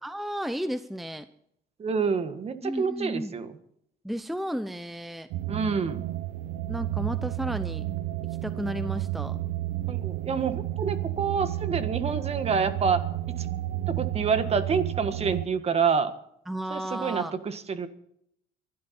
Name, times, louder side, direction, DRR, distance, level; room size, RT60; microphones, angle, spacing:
voice 1, 0.0-1.3 2.6-3.4 4.0-5.3 6.7-7.9 8.4-9.4 16.5-17.4, equal, ahead, 11 dB, 0.7 m, -33 dB
voice 2, 1.8-3.5 5.5-6.0 9.9-13.5 13.9-16.1 16.7-17.9, right 5 dB, 35° right, 10 dB, 1.6 m, -27 dB
sound 1, 5.3-15.5, right 14 dB, 90° right, 0.8 m, -31 dB
23.0 x 12.0 x 4.3 m, 0.73 s
cardioid pair, 110°, 17 cm